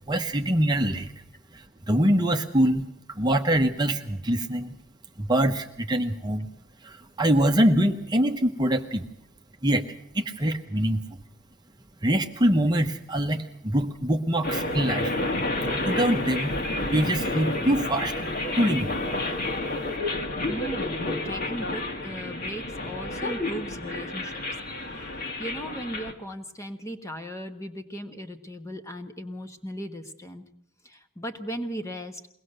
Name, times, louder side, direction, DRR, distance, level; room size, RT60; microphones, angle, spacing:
voice 1, 0.1-1.1 1.5-2.8 3.1-4.7 5.2-6.5 6.8-9.1 9.6-9.8 10.1-11.0 12.0-15.1 15.8-16.6 16.9-18.1 18.6-18.9, right 1 dB, 20° right, 4 dB, 0.9 m, -24 dB
sound 1, 14.4-26.1, left 2 dB, 45° left, 2.0 m, -30 dB
voice 2, 20.5-24.4 25.4-30.4 30.8-32.2, equal, 15° left, 6 dB, 1.2 m, -37 dB
22.0 x 18.5 x 6.7 m, 0.72 s
head